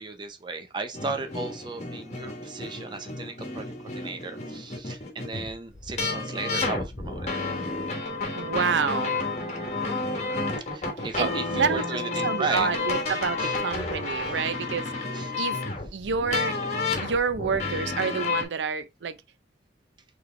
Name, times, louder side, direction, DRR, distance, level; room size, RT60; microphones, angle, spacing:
voice 1, 0.0-7.3 10.7-12.9 13.4-13.6 14.1-14.4 15.1-15.3, right 3 dB, 25° right, 0.6 m, -35 dB
sound 1, 0.9-18.4, left 3 dB, 40° left, 1.0 m, -31 dB
voice 2, 8.3-9.2 11.2-15.1 15.4-15.6 15.9-16.6 16.9-19.2, right 5 dB, 85° right, 0.5 m, -28 dB
4.0 x 3.2 x 3.1 m
head